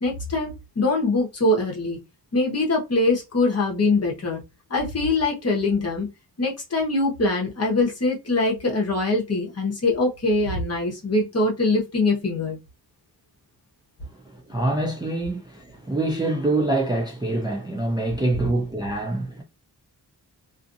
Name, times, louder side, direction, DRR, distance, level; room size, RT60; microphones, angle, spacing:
voice 1, 0.0-2.0 2.3-4.4 4.7-6.1 6.4-12.6, left 2 dB, 40° left, 1.0 m, -23 dB
voice 2, 14.5-19.4, right 2 dB, 10° right, 0.4 m, -25 dB
2.5 x 2.5 x 2.6 m
wide cardioid pair, 175°, 39 cm